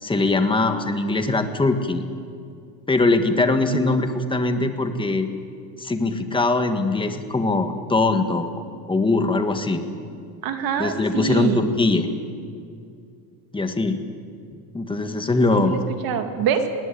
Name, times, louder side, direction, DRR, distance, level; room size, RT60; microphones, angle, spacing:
voice 1, 0.0-2.0 2.9-5.3 5.8-8.5 8.9-9.8 10.8-12.1 13.5-14.0 14.7-15.8, left 2 dB, 10° left, 7 dB, 1.7 m, -21 dB
voice 2, 10.4-11.7 15.5-16.7, right 7 dB, 55° right, 6 dB, 2.4 m, -25 dB
20.0 x 19.5 x 8.6 m, 2.4 s
cardioid pair, 130°, 43 cm